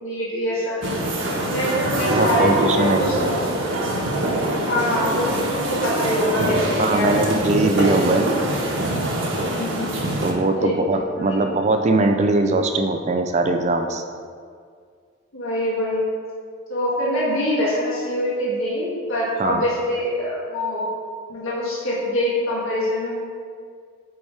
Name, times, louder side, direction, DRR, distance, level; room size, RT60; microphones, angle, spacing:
voice 1, 0.0-0.8 1.5-3.4 4.6-7.2 7.8-8.1 9.4-9.9 10.6-10.7 11.2-11.4 15.3-16.1 16.7-20.9 21.3-23.2, left 1 dB, 70° left, -7 dB, 1.5 m, -24 dB
sound 1, 0.8-10.3, right 1 dB, 65° right, 1.1 m, -24 dB
voice 2, 2.1-3.3 6.8-8.3 10.2-14.0 19.4-19.6, right 2 dB, 30° right, 6 dB, 0.3 m, -21 dB
5.3 x 4.7 x 4.7 m, 2.1 s
head